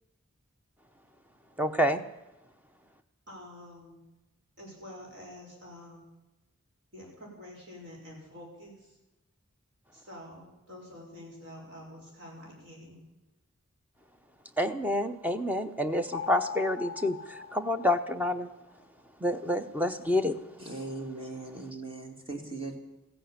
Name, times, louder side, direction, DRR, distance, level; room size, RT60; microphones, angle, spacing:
voice 1, 1.6-2.0 14.6-18.5 19.2-20.3, left 1 dB, 10° right, 8 dB, 0.8 m, -28 dB
voice 2, 3.3-4.0 4.6-6.0 6.9-8.9 9.9-13.0, left 1 dB, 55° right, -1 dB, 6.2 m, -47 dB
sound 1, 16.1-18.6, left 7 dB, 65° left, 0.5 m, -40 dB
voice 3, 20.6-22.8, right 3 dB, 25° right, 4 dB, 2.4 m, -39 dB
15.0 x 11.0 x 8.8 m, 0.99 s
head